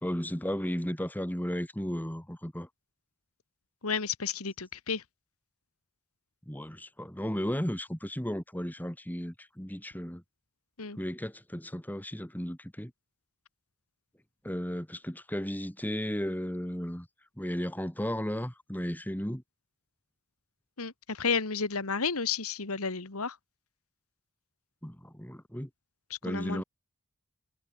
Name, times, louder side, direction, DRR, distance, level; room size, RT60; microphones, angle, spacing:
voice 1, 0.0-2.7 6.5-10.2 11.0-12.9 14.4-17.1 17.4-19.4 24.8-25.7 26.2-26.6, equal, 10° left, 2.4 m, -34 dB
voice 2, 3.8-5.0 10.8-11.0 20.8-23.4 26.1-26.6, left 5 dB, 80° left, 1.9 m, -32 dB
head